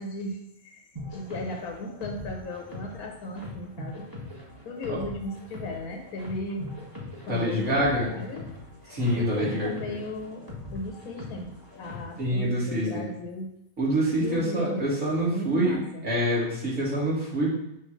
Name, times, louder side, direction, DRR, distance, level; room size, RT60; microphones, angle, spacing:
voice 1, 0.0-4.1 4.6-6.7 7.3-8.5 8.8-13.5 14.2-14.9 15.3-16.1, left 1 dB, 80° left, 2 dB, 1.4 m, -36 dB
sound 1, 1.0-12.2, left 2 dB, 15° right, 1.4 m, -41 dB
voice 2, 7.3-8.1 8.9-10.0 12.2-13.0 13.8-15.8 16.0-17.5, equal, 60° right, -7 dB, 2.7 m, -26 dB
6.4 x 3.3 x 5.6 m, 0.81 s
omnidirectional pair, 1.6 m